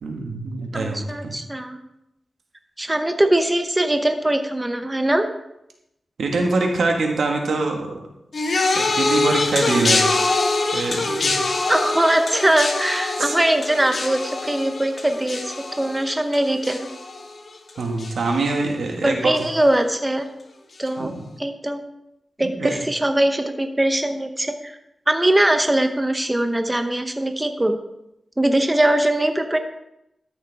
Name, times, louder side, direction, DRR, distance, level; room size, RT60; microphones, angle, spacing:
voice 1, 0.0-1.3 6.2-8.0 8.7-10.1 10.7-11.5 13.2-13.3 17.8-19.3 21.0-21.2 22.4-22.7, right 3 dB, 90° right, 2 dB, 1.6 m, -24 dB
voice 2, 0.7-1.8 2.8-5.2 11.7-16.9 19.0-20.3 20.8-21.1 21.4-21.8 22.4-24.7 25.1-27.8 28.4-29.6, right 1 dB, 15° right, 6 dB, 0.8 m, -21 dB
sound 1, 8.3-17.7 18.0-18.5 19.4-19.5, left 3 dB, 60° left, 1.1 m, -24 dB
13.0 x 6.7 x 3.5 m, 0.85 s
wide cardioid pair, 80°, 0 cm